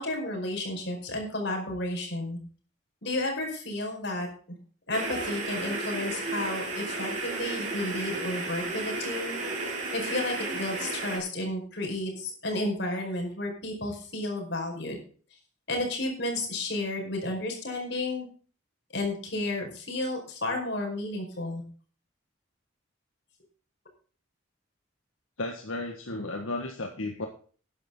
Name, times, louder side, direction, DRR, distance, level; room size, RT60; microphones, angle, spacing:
voice 1, 0.0-2.4 3.0-4.3 4.9-9.4 9.9-15.0 15.7-18.3 18.9-21.6, left 2 dB, 55° left, 2 dB, 5.2 m, -32 dB
sound 1, 4.9-11.2, right 3 dB, 35° right, 6.3 m, -33 dB
voice 2, 25.4-27.3, left 2 dB, 80° left, 3 dB, 1.7 m, -34 dB
13.0 x 11.0 x 3.9 m, 0.41 s
head